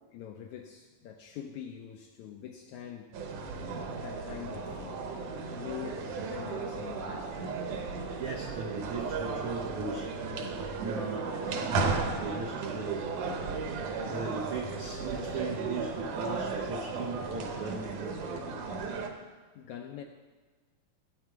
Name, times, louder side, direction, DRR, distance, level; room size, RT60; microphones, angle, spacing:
voice 1, 0.1-3.6 4.0-7.4 10.3-10.6 13.7-14.0 19.5-20.0, left 9 dB, 80° left, 4 dB, 1.7 m, -44 dB
sound 1, 3.1-19.1, right 4 dB, 70° right, 2.3 m, -35 dB
voice 2, 8.2-10.1 10.8-13.3 14.0-18.6, right 4 dB, 90° right, 0 dB, 1.2 m, -38 dB
15.0 x 8.1 x 4.6 m, 1.3 s
omnidirectional pair, 3.9 m